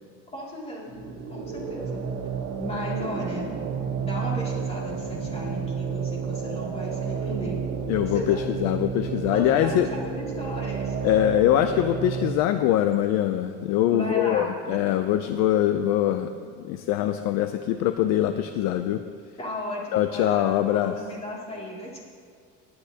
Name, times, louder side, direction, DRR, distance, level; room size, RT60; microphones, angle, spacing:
voice 1, 0.3-1.0 1.3-2.0 2.6-3.5 4.0-7.6 8.1-8.4 9.3-11.0 13.9-14.5 19.4-22.0, left 1 dB, 15° left, -4 dB, 2.4 m, -35 dB
sound 1, 0.9-12.3, right 6 dB, 45° right, 1.5 m, -31 dB
voice 2, 7.9-9.9 11.0-16.3 16.6-19.0 19.9-20.9, left 12 dB, 50° left, 9 dB, 0.5 m, -23 dB
18.0 x 10.5 x 2.8 m, 2.2 s
cardioid pair, 165°, 35 cm